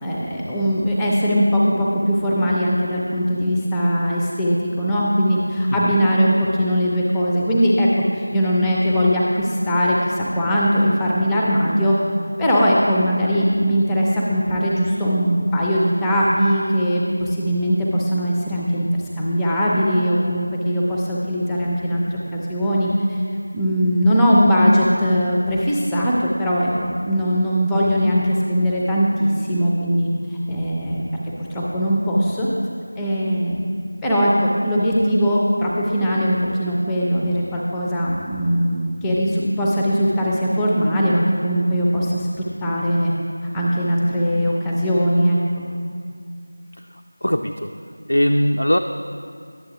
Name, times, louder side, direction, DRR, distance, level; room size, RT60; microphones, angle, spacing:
voice 1, 0.0-7.9 8.1-12.0 12.4-18.9 19.2-23.2 23.5-30.1 30.5-31.0 31.4-32.5 33.0-33.6 34.0-42.3 42.6-43.1 43.5-45.6, equal, 5° left, -4 dB, 0.5 m, -20 dB
voice 2, 46.8-47.7 48.1-48.8, equal, 85° left, 4 dB, 0.4 m, -21 dB
11.0 x 7.7 x 2.9 m, 2.2 s
figure-of-eight pair, 170°, 0 cm